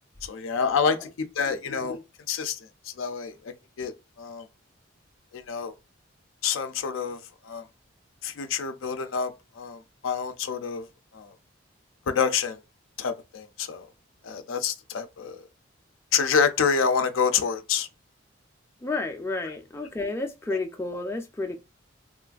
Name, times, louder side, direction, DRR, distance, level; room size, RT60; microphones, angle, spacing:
voice 1, 0.2-2.0 2.3-2.6 3.0-3.9 4.2-4.4 5.3-5.7 6.4-7.6 8.2-10.9 11.1-11.3 12.1-12.6 13.0-13.9 14.2-15.4 16.1-17.9 19.4-19.5 20.5-20.6, left 6 dB, 85° left, 0.4 m, -27 dB
voice 2, 18.8-21.6, left 3 dB, 15° left, 0.3 m, -31 dB
3.0 x 2.4 x 2.3 m
head